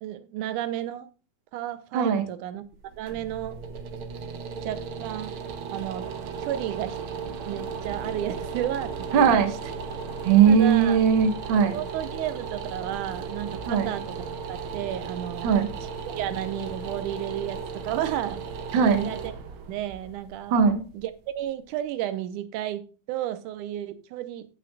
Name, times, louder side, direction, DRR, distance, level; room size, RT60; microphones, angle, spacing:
voice 1, 0.0-1.1 1.5-2.6 3.0-3.6 4.6-5.4 5.7-6.1 6.4-7.0 7.5-8.9 9.2-9.4 10.5-11.0 11.7-14.2 14.5-15.5 16.2-17.6 17.8-18.4 18.9-19.3 19.7-20.5 20.9-24.5, right 12 dB, 90° right, 2.2 m, -32 dB
sound 1, 2.7-21.6, right 5 dB, 70° right, 1.2 m, -36 dB
voice 2, 9.1-9.5 10.2-11.8 13.7-13.9 15.4-15.7 18.7-19.1 20.5-20.8, right 7 dB, 55° right, 1.5 m, -19 dB
16.5 x 5.9 x 2.3 m
omnidirectional pair, 3.5 m